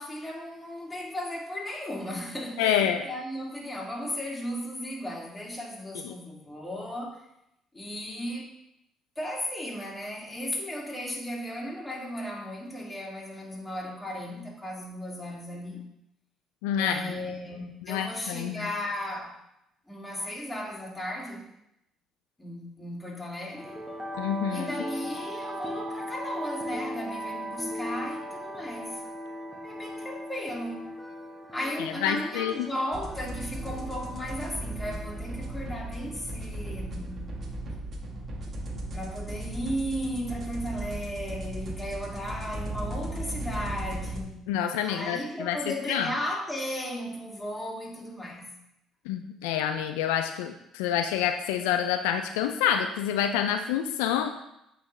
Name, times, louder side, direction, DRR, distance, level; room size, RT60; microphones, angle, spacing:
voice 1, 0.0-7.2 7.7-8.5 9.2-15.8 16.8-19.4 19.9-21.5 22.4-23.8 24.5-29.0 29.6-30.9 31.5-37.3 38.9-44.4 44.8-48.5, equal, 15° left, -3 dB, 2.3 m, -35 dB
voice 2, 2.6-3.0 6.0-6.1 16.6-17.0 17.9-18.7 24.2-24.7 31.8-32.7 44.5-45.6 45.9-46.1 49.1-54.3, left 9 dB, 85° left, 6 dB, 0.4 m, -27 dB
sound 1, 23.5-37.6, equal, 10° right, 1.4 m, -39 dB
sound 2, 32.9-44.2, right 1 dB, 50° right, 1.1 m, -36 dB
8.7 x 3.9 x 3.3 m, 0.83 s
hypercardioid pair, 65°, 0 cm